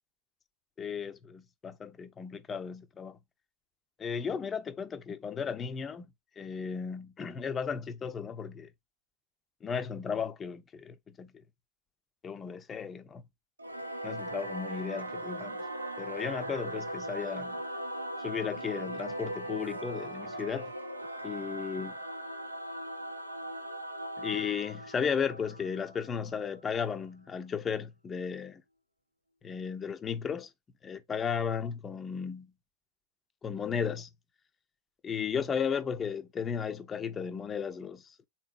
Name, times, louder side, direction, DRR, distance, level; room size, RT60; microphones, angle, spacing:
voice 1, 0.8-3.2 4.0-6.1 6.4-8.7 9.6-11.4 12.2-13.2 14.0-15.6 16.0-17.6 18.2-20.7 21.2-21.9 24.2-28.6 29.4-30.5 30.8-32.5 33.4-34.1 35.0-38.2, left 6 dB, 20° left, 0.5 m, -35 dB
Singing / Musical instrument, 13.6-26.5, right 1 dB, 80° right, 0.4 m, -39 dB
3.7 x 2.8 x 2.3 m
figure-of-eight pair, 90°, 0 cm